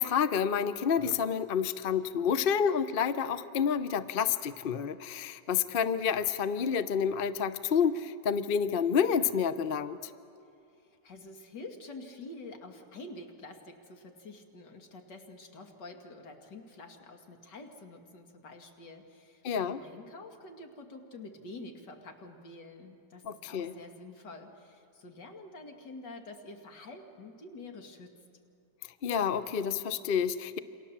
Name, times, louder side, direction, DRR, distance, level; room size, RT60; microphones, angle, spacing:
voice 1, 0.0-10.0 19.4-19.8 23.2-23.7 29.0-30.6, left 7 dB, 55° left, 13 dB, 0.6 m, -29 dB
voice 2, 10.8-28.1, left 2 dB, 75° left, 4 dB, 2.8 m, -48 dB
28.5 x 26.0 x 7.3 m, 2.5 s
omnidirectional pair, 1.9 m